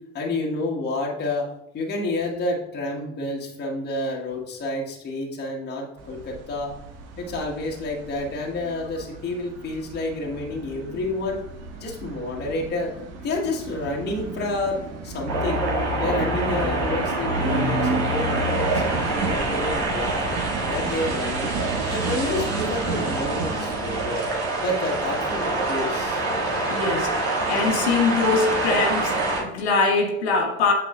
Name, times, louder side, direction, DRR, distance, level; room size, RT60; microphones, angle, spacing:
voice 1, 0.1-1.5 1.7-6.8 7.2-11.4 11.8-12.9 13.2-15.7 16.0-20.3 20.7-21.5 21.9-24.2 24.6-26.2, left 2 dB, 30° left, -1 dB, 1.4 m, -29 dB
sound 1, 6.0-24.1, right 4 dB, 45° right, 1.3 m, -33 dB
sound 2, 15.2-22.8, left 5 dB, 90° right, 0.7 m, -34 dB
sound 3, 15.3-29.4, right 2 dB, 65° right, 1.7 m, -26 dB
voice 2, 26.7-30.7, left 4 dB, 65° left, 1 dB, 1.2 m, -23 dB
8.4 x 6.8 x 2.3 m, 0.83 s
figure-of-eight pair, 65°, 35 cm